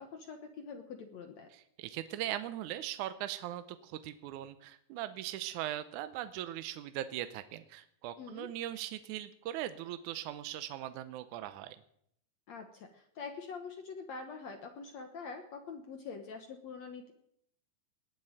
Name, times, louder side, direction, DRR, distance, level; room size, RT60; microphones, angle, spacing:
voice 1, 0.0-1.5 8.2-8.5 12.5-17.1, left 5 dB, 60° left, 5 dB, 2.0 m, -45 dB
voice 2, 1.5-11.8, right 13 dB, 75° right, 11 dB, 1.8 m, -40 dB
19.5 x 7.7 x 9.0 m, 0.71 s
omnidirectional pair, 4.3 m